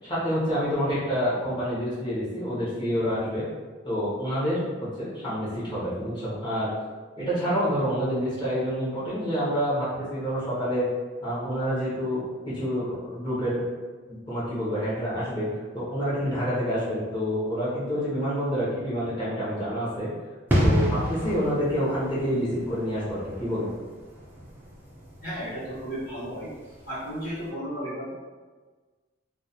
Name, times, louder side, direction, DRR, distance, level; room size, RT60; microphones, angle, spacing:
voice 1, 0.0-3.4 3.8-6.7 7.2-10.8 11.2-13.6 14.1-15.5 15.7-20.1 20.6-23.7, equal, 25° left, -10 dB, 0.7 m, -28 dB
sound 1, 20.5-27.0 27.3-27.4, equal, 10° right, 0.3 m, -29 dB
voice 2, 25.2-26.5 26.9-28.2, equal, 55° left, -11 dB, 0.8 m, -34 dB
2.3 x 2.2 x 2.7 m, 1.4 s
head